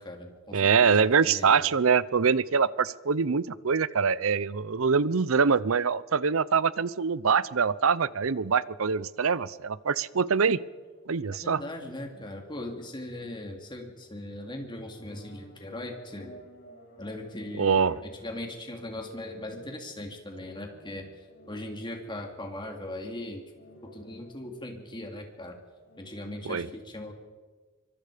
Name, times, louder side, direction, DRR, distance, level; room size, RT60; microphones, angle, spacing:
voice 1, 0.0-1.7 11.3-16.3 17.0-21.1 21.5-23.4 23.8-25.6 26.0-27.1, left 1 dB, 20° left, 2 dB, 3.0 m, -39 dB
voice 2, 0.5-10.6 11.1-11.6 17.6-18.0 26.5-26.7, right 5 dB, 70° right, 19 dB, 0.7 m, -24 dB
sound 1, 7.9-8.9 10.0-11.3 11.9-13.8 14.0-14.2 14.7-23.1 23.5-25.1 25.8-26.4, equal, 45° left, 5.4 m, -54 dB
24.5 x 24.0 x 5.1 m, 1.4 s
head